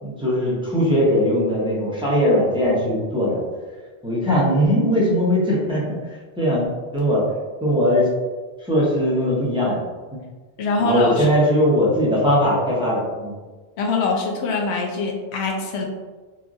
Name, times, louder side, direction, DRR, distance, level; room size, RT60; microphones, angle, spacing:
voice 1, 0.0-3.4 4.0-5.8 6.4-6.7 6.9-7.2 7.6-8.1 8.7-9.8 10.8-13.3, equal, 5° right, -7 dB, 0.6 m, -19 dB
voice 2, 10.6-11.3 13.8-15.8, left 3 dB, 85° left, 1 dB, 0.8 m, -23 dB
2.9 x 2.5 x 2.4 m, 1.4 s
omnidirectional pair, 1.1 m